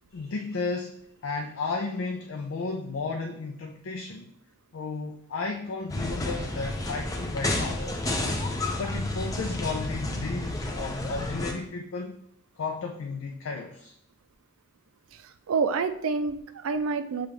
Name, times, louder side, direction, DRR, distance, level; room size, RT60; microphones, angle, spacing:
voice 1, 0.1-1.0 1.2-4.3 4.7-7.9 8.8-12.2 12.6-13.9, left 4 dB, 80° left, 3 dB, 0.4 m, -33 dB
sound 1, 5.9-11.5, left 2 dB, 15° left, 0.4 m, -30 dB
voice 2, 15.1-17.3, right 4 dB, 85° right, 9 dB, 0.4 m, -28 dB
6.6 x 2.4 x 3.1 m, 0.71 s
head